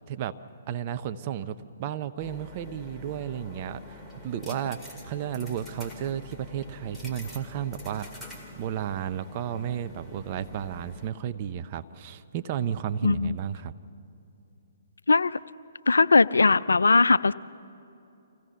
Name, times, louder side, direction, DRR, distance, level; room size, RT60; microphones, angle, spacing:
voice 1, 0.7-13.7, right 9 dB, 35° right, 10 dB, 0.7 m, -33 dB
sound 1, 2.2-11.1, left 1 dB, ahead, 2.1 m, -46 dB
voice 2, 13.0-13.4 15.1-15.4 15.9-17.3, left 3 dB, 80° left, 17 dB, 0.4 m, -20 dB
25.5 x 16.0 x 7.0 m, 2.8 s
figure-of-eight pair, 130°, 0 cm